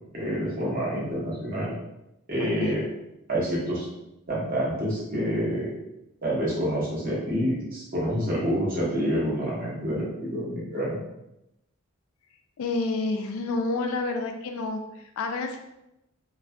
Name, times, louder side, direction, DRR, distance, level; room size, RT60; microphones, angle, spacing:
voice 1, 0.1-1.7 2.3-2.8 3.3-3.9 4.3-5.7 6.2-11.0, equal, 40° right, -6 dB, 0.9 m, -27 dB
voice 2, 2.4-2.8 12.6-15.6, left 3 dB, 70° left, 5 dB, 0.3 m, -29 dB
2.5 x 2.4 x 2.2 m, 0.88 s
head